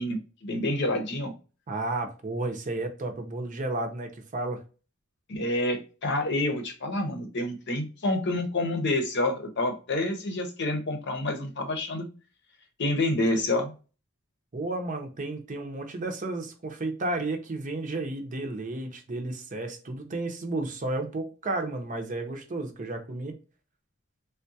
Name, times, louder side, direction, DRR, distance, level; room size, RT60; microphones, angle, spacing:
voice 1, 0.0-1.3 5.3-12.1 12.8-13.7, left 1 dB, 60° left, 0.8 m, -28 dB
voice 2, 1.7-4.6 14.5-23.4, right 2 dB, 40° right, 0.6 m, -32 dB
3.6 x 2.3 x 2.6 m
head